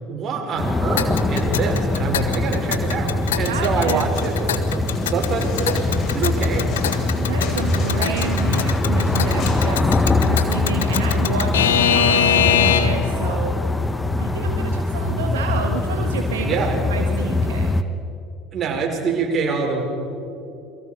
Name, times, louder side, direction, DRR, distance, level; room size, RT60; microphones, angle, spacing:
voice 1, 0.1-6.9 11.7-11.8 16.4-16.8 18.5-19.8, right 5 dB, 40° right, 0 dB, 5.7 m, -25 dB
sound 1, 0.6-17.8, left 2 dB, 10° left, 1.3 m, -22 dB
Alarm / Clock, 1.0-13.1, left 8 dB, 75° left, 1.2 m, -24 dB
voice 2, 3.5-4.0 7.2-10.0 10.2-13.6 14.2-17.8, right 6 dB, 75° right, 3 dB, 1.6 m, -30 dB
sound 2, 4.1-9.7 9.9-10.0, left 3 dB, 45° left, 7.0 m, -36 dB
28.5 x 23.0 x 5.2 m, 2.7 s
figure-of-eight pair, 65°, 0 cm